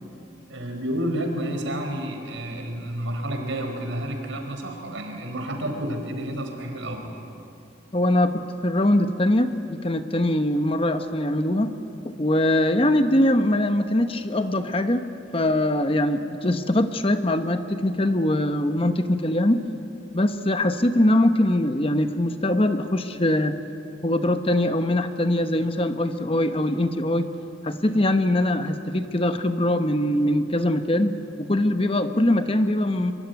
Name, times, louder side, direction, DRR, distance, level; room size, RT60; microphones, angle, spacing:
voice 1, 0.5-7.1, right 1 dB, 75° right, 4 dB, 4.5 m, -30 dB
voice 2, 7.9-11.7 12.0-15.1 15.3-19.6 20.1-23.5 24.0-27.3 27.6-33.1, left 1 dB, 30° left, 8 dB, 1.0 m, -22 dB
24.5 x 24.5 x 9.4 m, 2.8 s
head